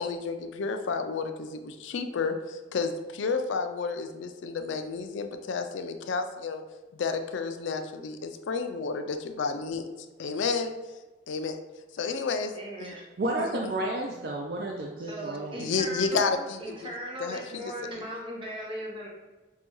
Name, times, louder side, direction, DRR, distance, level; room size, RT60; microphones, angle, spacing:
voice 1, 0.0-6.6 6.9-9.9 10.2-10.7 11.3-11.6 11.9-12.5 12.8-12.9 15.6-16.6 17.2-17.4, left 4 dB, 85° left, 7 dB, 0.4 m, -31 dB
voice 2, 12.5-13.2 15.0-19.1, equal, 30° right, -2 dB, 0.8 m, -38 dB
voice 3, 13.2-15.7, right 1 dB, 55° right, -1 dB, 0.4 m, -31 dB
5.4 x 2.2 x 3.0 m, 1.2 s
head